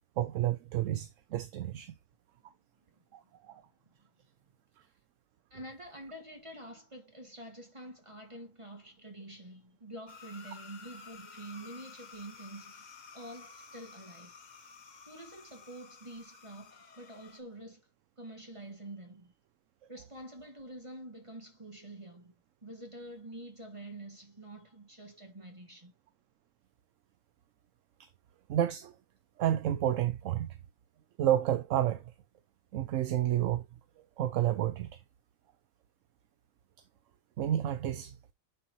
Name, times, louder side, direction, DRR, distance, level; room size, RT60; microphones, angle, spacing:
voice 1, 0.2-1.9 3.1-3.6 28.5-28.9 29.4-30.6 31.2-32.1 32.7-33.7 34.2-35.0 37.4-38.3, right 12 dB, 70° right, 1.0 m, -30 dB
voice 2, 3.5-4.1 5.5-14.3 15.0-17.8 18.2-19.3 19.9-22.3 22.6-25.9, right 1 dB, 25° right, 1.7 m, -47 dB
sound 1, 10.1-17.4, left 5 dB, 40° left, 0.8 m, -52 dB
10.0 x 4.0 x 3.0 m
omnidirectional pair, 1.4 m